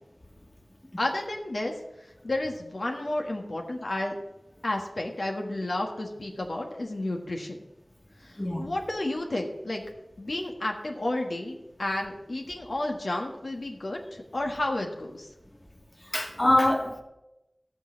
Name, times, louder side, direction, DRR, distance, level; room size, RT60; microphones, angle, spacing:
voice 1, 1.0-1.7 2.2-4.1 4.6-7.6 8.2-9.8 10.2-15.3, left 1 dB, 80° left, 1.5 m, -31 dB
voice 2, 16.1-17.0, left 1 dB, 30° left, 1.7 m, -24 dB
14.0 x 6.6 x 6.4 m
wide cardioid pair, 45°, 0 cm